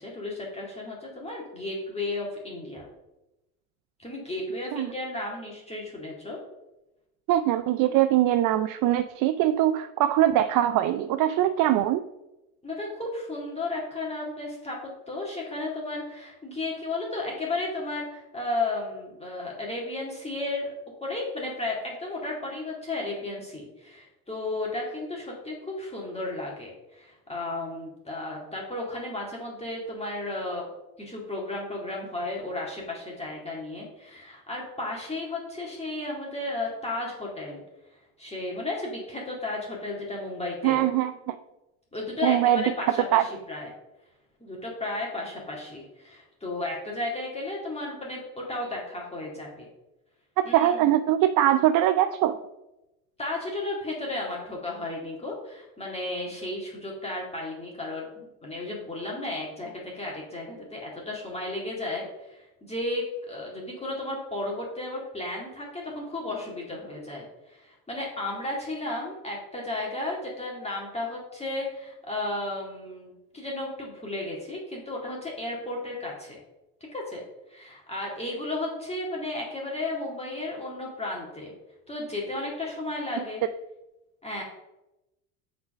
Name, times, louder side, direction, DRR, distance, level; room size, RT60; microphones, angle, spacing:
voice 1, 0.0-2.9 4.0-6.4 12.6-14.8 15.1-20.7 21.0-30.7 31.0-37.6 37.9-40.8 41.9-43.7 44.4-49.7 50.4-50.8 53.2-76.4 76.9-77.2 77.5-81.5 81.9-83.4 84.2-84.4, left 2 dB, 15° left, -3 dB, 2.0 m, -34 dB
voice 2, 7.3-12.0 40.6-41.4 42.2-42.6 43.1-43.2 50.4-52.4, right 12 dB, 50° right, 11 dB, 0.5 m, -22 dB
5.9 x 4.2 x 6.2 m, 0.95 s
hypercardioid pair, 75°, 43 cm